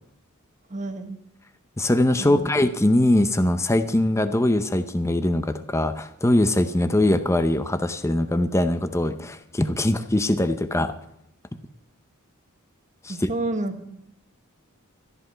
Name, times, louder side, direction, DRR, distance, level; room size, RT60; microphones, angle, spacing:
voice 1, 0.7-1.2 2.2-2.5 13.1-13.9, right 2 dB, 35° right, 7 dB, 1.3 m, -30 dB
voice 2, 1.8-10.9 13.0-13.3, left 1 dB, 15° left, 9 dB, 0.6 m, -22 dB
13.5 x 11.0 x 5.6 m, 0.80 s
head